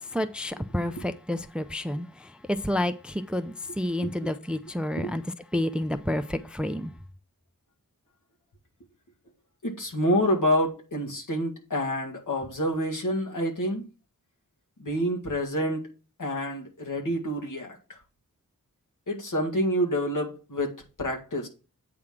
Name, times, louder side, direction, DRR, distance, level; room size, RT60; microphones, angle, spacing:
voice 1, 0.1-5.2 5.5-6.9, left 1 dB, 5° right, 0.4 m, -29 dB
voice 2, 4.0-4.3 5.0-5.1 9.6-13.9 14.8-15.9 16.2-17.8 19.1-21.5, equal, 70° left, 1.8 m, -28 dB
8.7 x 3.6 x 5.9 m
wide cardioid pair, 95°, 32 cm